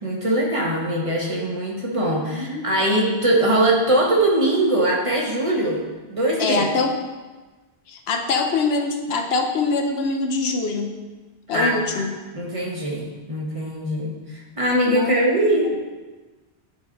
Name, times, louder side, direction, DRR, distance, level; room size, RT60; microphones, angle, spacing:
voice 1, 0.0-5.8 6.1-6.6 11.5-12.0 12.3-14.2 14.6-15.7, right 1 dB, 35° right, -3 dB, 1.0 m, -21 dB
voice 2, 2.3-2.7 6.4-7.0 7.9-10.9 11.5-12.1 14.9-15.1, left 3 dB, 75° left, 4 dB, 0.9 m, -23 dB
9.0 x 3.6 x 3.8 m, 1.3 s
omnidirectional pair, 1.1 m